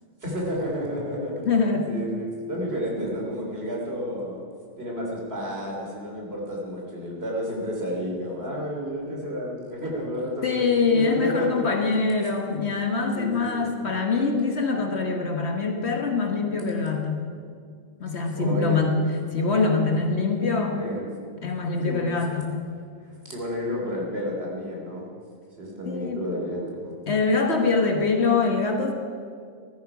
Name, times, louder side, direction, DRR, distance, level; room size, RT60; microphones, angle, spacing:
voice 1, 0.2-1.5 1.9-4.4 4.8-11.7 13.1-13.7 18.3-18.8 20.8-21.1 21.8-22.1 23.3-25.1 25.6-27.0, equal, 55° right, -2 dB, 3.4 m, -31 dB
voice 2, 1.5-1.9 10.4-17.2 18.0-19.0 19.3-20.8 21.4-22.6 25.8-26.2 27.1-28.9, left 4 dB, 60° left, 3 dB, 1.6 m, -24 dB
15.5 x 13.0 x 4.8 m, 2.2 s
omnidirectional pair, 1.3 m